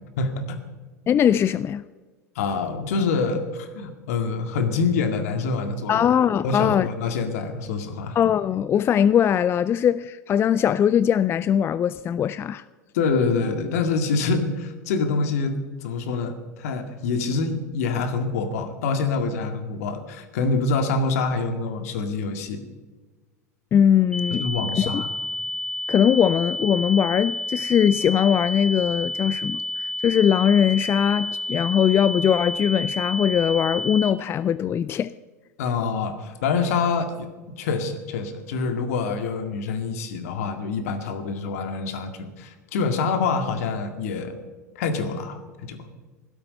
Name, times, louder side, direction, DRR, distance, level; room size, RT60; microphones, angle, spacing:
voice 1, 0.2-0.6 2.4-6.1 6.4-8.2 12.9-22.6 24.4-25.1 35.6-44.3 44.8-45.9, left 4 dB, 60° left, 2.0 m, -26 dB
voice 2, 1.1-1.8 5.9-6.9 8.2-12.6 23.7-24.5 24.8-25.0 25.9-35.1, left 9 dB, 25° left, 0.4 m, -21 dB
sound 1, 24.1-34.1, left 1 dB, 5° left, 0.9 m, -30 dB
16.0 x 13.0 x 5.5 m
figure-of-eight pair, 80°, 9 cm